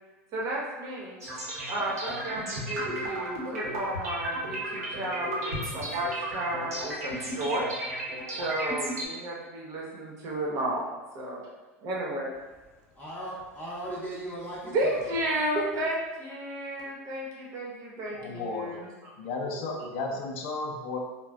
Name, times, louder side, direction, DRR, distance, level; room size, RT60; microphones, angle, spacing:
voice 1, 0.3-1.2 1.7-7.7 8.4-11.4 11.8-12.3 14.6-19.1, right 1 dB, 45° right, -3 dB, 0.9 m, -32 dB
sound 1, 1.2-9.1, right 1 dB, 80° right, 0.9 m, -34 dB
voice 2, 12.9-15.0, right 1 dB, 15° left, -7 dB, 0.7 m, -38 dB
voice 3, 18.1-18.7 19.2-21.0, left 3 dB, 60° left, 1 dB, 0.5 m, -33 dB
3.9 x 2.2 x 2.3 m, 1.2 s
hypercardioid pair, 85°, 8 cm